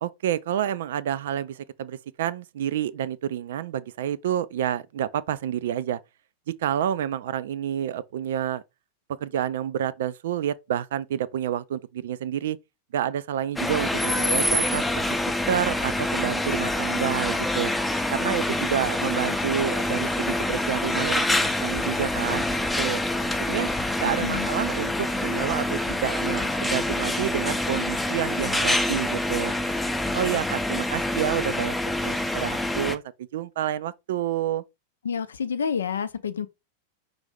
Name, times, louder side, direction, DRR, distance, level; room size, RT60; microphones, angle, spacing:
voice 1, 0.0-6.0 6.6-8.6 9.2-12.6 12.9-17.7 18.1-23.0 23.4-23.7 24.0-29.7 30.1-31.8 32.0-33.0 33.3-34.6, right 10 dB, 60° right, 0.3 m, -29 dB
sound 1, 13.6-33.0, left 1 dB, 5° left, 0.5 m, -26 dB
voice 2, 35.0-36.5, left 7 dB, 70° left, 0.5 m, -28 dB
5.3 x 2.5 x 3.3 m
figure-of-eight pair, 90°, 0 cm